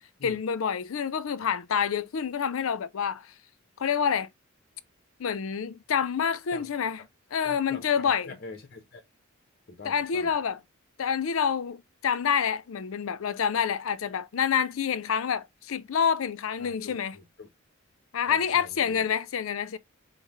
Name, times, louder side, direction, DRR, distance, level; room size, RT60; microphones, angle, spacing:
voice 1, 0.2-3.3 3.8-4.3 5.2-7.0 7.3-8.3 9.8-10.6 11.0-17.2 18.1-19.8, left 7 dB, 80° left, 0.5 m, -27 dB
voice 2, 7.4-9.0 9.7-10.3 16.6-17.5 18.3-19.1, left 3 dB, 50° left, 0.7 m, -45 dB
5.5 x 2.1 x 3.0 m
head